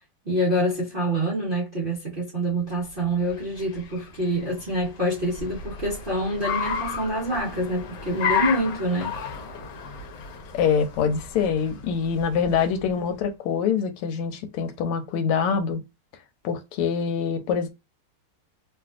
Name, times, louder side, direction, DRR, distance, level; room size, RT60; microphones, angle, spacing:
voice 1, 0.2-9.3, right 1 dB, 55° right, 0.6 m, -26 dB
Car, 2.9-13.1, left 6 dB, 65° left, 1.2 m, -33 dB
voice 2, 10.5-15.8 16.4-17.7, left 6 dB, 85° left, 1.5 m, -25 dB
3.3 x 2.5 x 2.4 m
omnidirectional pair, 2.4 m